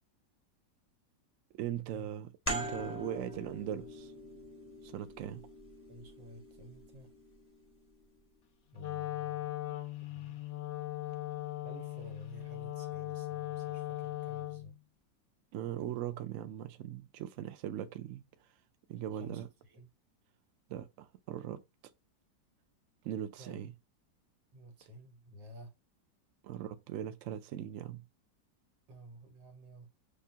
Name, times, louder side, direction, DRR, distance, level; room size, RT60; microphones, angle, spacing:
voice 1, 1.5-4.1 4.8-5.5 15.5-18.2 18.9-19.5 20.7-21.6 23.0-23.7 26.4-28.0, right 11 dB, 70° right, 0.7 m, -40 dB
sound 1, 2.5-7.7, right 1 dB, 10° left, 0.7 m, -43 dB
voice 2, 5.9-7.1 8.7-9.5 10.1-10.4 11.6-14.8 19.1-19.9 23.4-23.6 24.5-25.7 28.9-29.9, equal, 90° right, 2.0 m, -51 dB
Wind instrument woodwind instrument, 8.7-14.8, left 15 dB, 75° left, 0.6 m, -39 dB
6.6 x 2.4 x 2.7 m
omnidirectional pair, 2.0 m